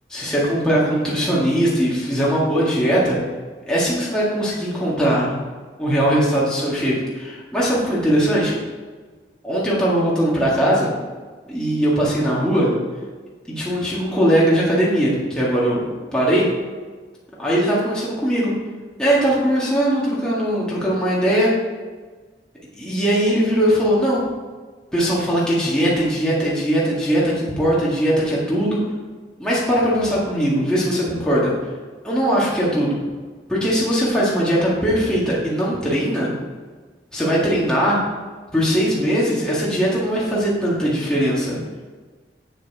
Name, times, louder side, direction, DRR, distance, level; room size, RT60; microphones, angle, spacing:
voice 1, 0.1-3.2 3.7-5.4 5.8-8.5 9.4-10.9 11.5-12.7 13.6-16.5 17.4-18.5 19.0-21.5 22.8-24.2 24.9-28.8 29.4-31.5 32.0-33.0 33.5-36.3 37.1-38.0 38.5-41.6, equal, 5° left, -7 dB, 1.9 m, -20 dB
8.0 x 6.4 x 4.8 m, 1.4 s
head